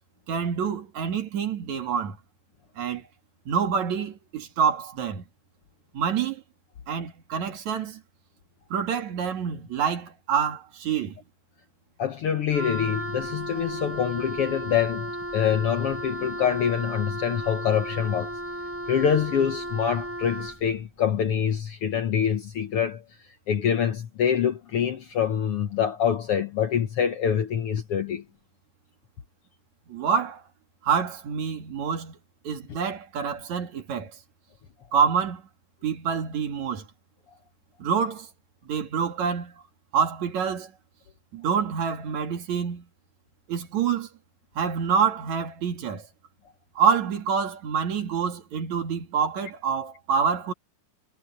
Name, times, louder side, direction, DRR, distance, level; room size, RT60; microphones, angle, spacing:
voice 1, 0.3-2.2 2.8-3.0 3.5-5.2 5.9-6.4 6.9-8.0 8.7-11.2 29.9-30.4 30.8-32.2 32.4-34.1 34.9-35.4 35.8-36.8 37.8-38.3 38.7-39.5 39.9-40.7 41.3-42.8 43.5-44.1 44.6-46.1 46.8-50.5, right 7 dB, 65° right, 3.3 m, -26 dB
voice 2, 12.0-18.3 18.9-23.0 23.5-28.2, left 8 dB, 65° left, 1.6 m, -25 dB
Wind instrument woodwind instrument, 12.5-20.7, right 1 dB, 5° right, 5.9 m, -34 dB
omnidirectional pair, 3.6 m